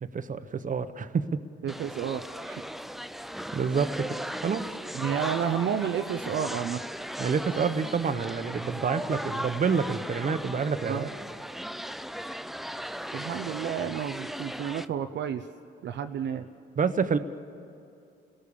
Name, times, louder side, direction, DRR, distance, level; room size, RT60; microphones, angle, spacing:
voice 1, 0.0-1.4 3.5-4.0 4.4-4.7 7.2-11.1 16.8-17.2, right 5 dB, 40° right, 11 dB, 1.2 m, -28 dB
voice 2, 1.6-2.6 4.9-6.8 10.9-11.1 13.1-15.4 15.8-16.5, right 8 dB, 65° right, 7 dB, 0.8 m, -31 dB
sound 1, 1.7-14.9, equal, ahead, 0.5 m, -37 dB
29.5 x 18.0 x 7.1 m, 2.6 s
cardioid pair, 90°, 20 cm